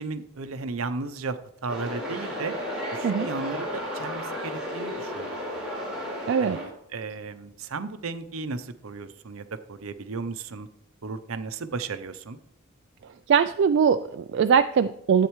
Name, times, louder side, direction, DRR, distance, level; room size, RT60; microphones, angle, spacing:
voice 1, 0.0-2.5 2.9-5.6 6.4-10.7 11.0-12.4, right 4 dB, 75° right, 11 dB, 0.7 m, -35 dB
sound 1, 1.7-6.7, equal, 5° right, 3.7 m, -33 dB
voice 2, 6.3-6.6 13.3-15.3, right 6 dB, 55° right, 9 dB, 0.3 m, -21 dB
13.5 x 8.4 x 3.1 m, 0.75 s
head